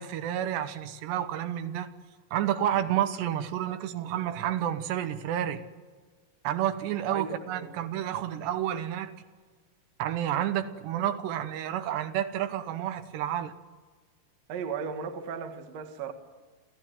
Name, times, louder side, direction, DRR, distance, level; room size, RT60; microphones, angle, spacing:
voice 1, 0.0-1.9 2.3-5.6 6.4-9.1 10.0-13.5, right 11 dB, 80° right, 3.2 m, -30 dB
voice 2, 7.1-7.7 14.5-16.1, right 6 dB, 50° right, 2.3 m, -36 dB
29.0 x 15.5 x 9.2 m
omnidirectional pair, 4.9 m